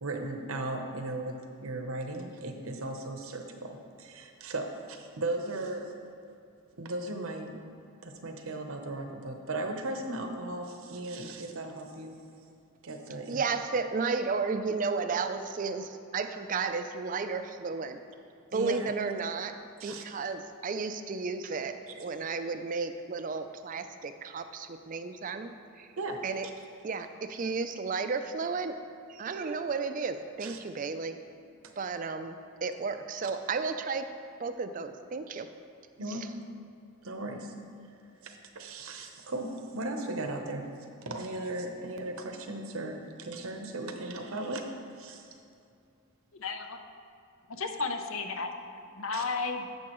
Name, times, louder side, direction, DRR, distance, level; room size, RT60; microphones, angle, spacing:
voice 1, 0.0-5.9 6.8-7.6 8.0-12.1 12.8-13.4 18.5-18.9 19.8-20.0 21.9-22.0 26.0-26.2 30.4-30.6 33.2-33.3 36.0-36.3 37.0-37.6 38.2-40.7 41.1-44.6 45.0-45.2 49.1-49.2, right 2 dB, 75° right, 4 dB, 0.8 m, -37 dB
voice 2, 13.3-18.0 18.5-19.6 19.8-25.9 26.2-26.5 26.8-28.8 29.1-31.2 31.8-34.1 34.4-35.5 36.1-36.2, right 4 dB, 35° right, 9 dB, 0.4 m, -33 dB
voice 3, 46.3-46.8 47.5-49.7, left 4 dB, 65° left, 6 dB, 0.6 m, -34 dB
10.5 x 7.2 x 3.0 m, 2.6 s
head